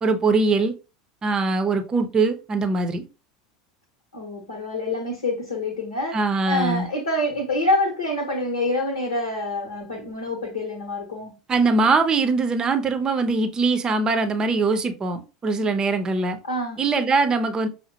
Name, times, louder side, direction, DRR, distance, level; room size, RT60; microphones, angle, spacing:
voice 1, 0.0-0.7 1.2-3.0 6.1-6.9 11.5-16.4 16.8-17.7, right 3 dB, 25° right, 0.6 m, -22 dB
voice 2, 4.1-6.2 6.4-11.3 16.4-16.8, left 1 dB, 75° left, 1.0 m, -26 dB
5.6 x 2.1 x 2.8 m
figure-of-eight pair, 75°, 3 cm